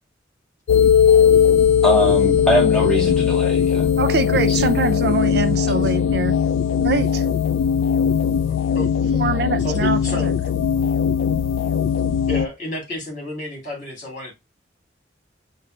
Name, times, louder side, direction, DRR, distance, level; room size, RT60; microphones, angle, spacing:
sound 1, 0.7-12.5, left 8 dB, 85° left, 0.3 m, -19 dB
voice 1, 1.8-3.9 4.5-4.7, equal, 5° left, 0.6 m, -22 dB
voice 2, 4.0-6.3 6.8-7.2 9.2-10.3, right 4 dB, 55° right, 0.4 m, -23 dB
voice 3, 8.5-9.2 9.6-10.3 12.3-14.3, left 1 dB, 45° left, 2.1 m, -32 dB
5.4 x 2.0 x 3.7 m
head